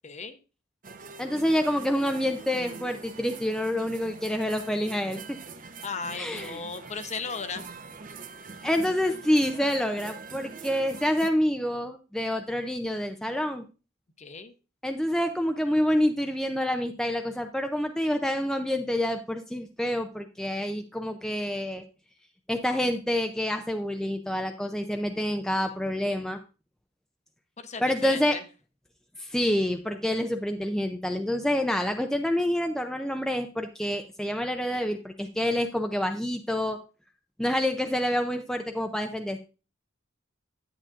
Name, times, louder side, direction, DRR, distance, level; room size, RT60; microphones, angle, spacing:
voice 1, 0.0-0.4 5.8-7.7 14.2-14.5 27.6-28.4, left 4 dB, 35° left, 10 dB, 0.7 m, -36 dB
sound 1, 0.8-11.3, right 4 dB, 40° right, 0.7 m, -44 dB
voice 2, 1.2-5.2 6.2-6.6 8.6-13.6 14.8-21.8 22.5-26.4 27.8-28.4 29.2-36.8 37.4-39.4, left 1 dB, 5° left, 5 dB, 0.4 m, -27 dB
10.0 x 8.8 x 2.5 m, 0.33 s
head